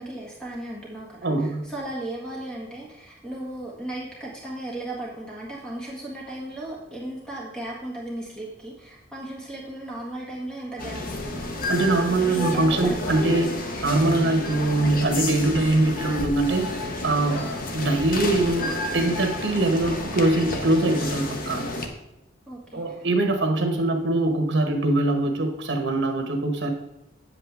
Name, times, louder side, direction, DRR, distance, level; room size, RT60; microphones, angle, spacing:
voice 1, 0.0-11.5 12.3-13.4 22.5-22.9, right 1 dB, 5° left, -4 dB, 1.6 m, -36 dB
voice 2, 1.2-1.7 11.7-13.5 13.8-16.7 17.0-21.7 22.7-26.7, right 2 dB, 65° right, 3 dB, 1.3 m, -23 dB
sound 1, 10.8-21.9, left 2 dB, 45° left, 0.9 m, -31 dB
8.9 x 7.7 x 3.4 m, 0.87 s
head